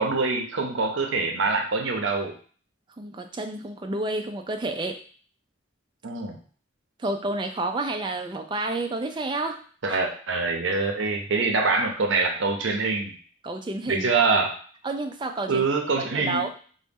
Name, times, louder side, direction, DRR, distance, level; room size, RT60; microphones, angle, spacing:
voice 1, 0.0-2.3 6.0-6.4 9.8-13.1 13.9-14.5 15.5-16.5, right 4 dB, 80° right, 3 dB, 0.6 m, -24 dB
voice 2, 3.0-5.0 7.0-9.6 9.9-10.0 11.4-11.5 13.4-14.2 14.8-15.6 16.0-16.5, right 2 dB, 25° right, 5 dB, 0.3 m, -30 dB
3.8 x 2.1 x 3.5 m, 0.44 s
head